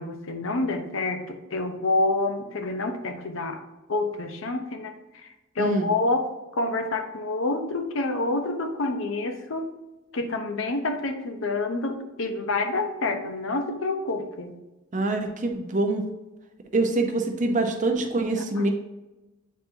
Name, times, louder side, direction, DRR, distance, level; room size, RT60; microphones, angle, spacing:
voice 1, 0.0-3.6 3.9-4.9 5.6-6.3 6.6-9.7 10.1-14.5, left 2 dB, 75° left, 5 dB, 0.7 m, -27 dB
voice 2, 5.6-5.9 14.9-16.0 16.7-18.7, right 2 dB, 40° right, 4 dB, 0.7 m, -25 dB
8.2 x 4.3 x 2.7 m, 1.1 s
head